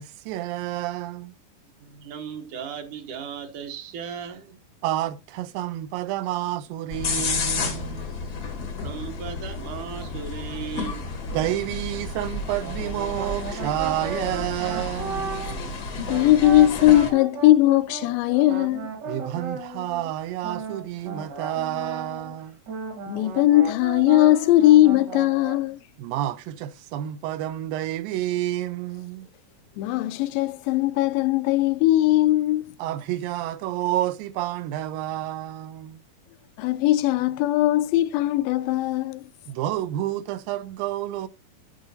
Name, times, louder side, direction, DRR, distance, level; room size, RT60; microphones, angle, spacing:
voice 1, 0.0-1.3 4.8-8.1 11.3-15.4 19.1-22.6 26.0-29.3 32.8-36.0 39.5-41.3, right 13 dB, 85° right, 2.4 m, -29 dB
voice 2, 1.8-4.6 8.2-8.3 8.6-11.0 11.9-12.0, right 7 dB, 70° right, 2.2 m, -36 dB
sound 1, 6.9-17.1, left 4 dB, 65° left, 0.9 m, -32 dB
sound 2, 12.6-15.7 16.0-22.4 22.7-25.6, right 4 dB, 50° right, 1.3 m, -35 dB
voice 3, 16.0-18.9 23.1-25.8 29.8-32.6 36.6-39.2, left 15 dB, 85° left, 2.3 m, -19 dB
10.5 x 8.7 x 2.6 m
omnidirectional pair, 4.0 m